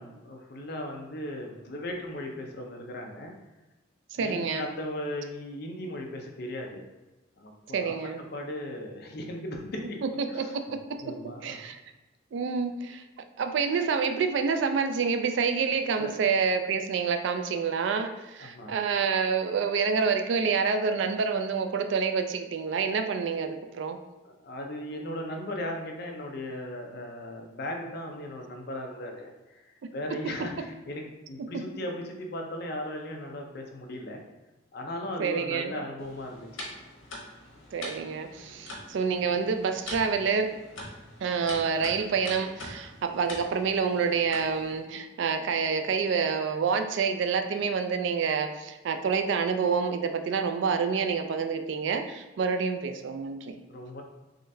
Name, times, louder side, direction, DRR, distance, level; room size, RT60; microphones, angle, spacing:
voice 1, 0.0-3.3 4.2-6.8 7.4-8.0 8.3-10.0 10.3-10.5 11.0-11.6 16.0-16.1 18.4-18.7 24.2-29.6 29.9-34.2 34.7-36.5 38.4-38.7 53.7-54.0, left 1 dB, 50° left, 2 dB, 0.5 m, -37 dB
voice 2, 4.1-4.7 7.7-8.2 10.0-11.8 12.3-13.0 13.4-24.0 30.1-30.5 31.4-31.8 35.2-35.7 37.7-40.6 41.2-53.6, right 5 dB, 65° right, 7 dB, 0.3 m, -28 dB
sound 1, 36.0-44.8, left 1 dB, 85° left, 1.1 m, -44 dB
3.8 x 3.1 x 2.6 m, 1.1 s
head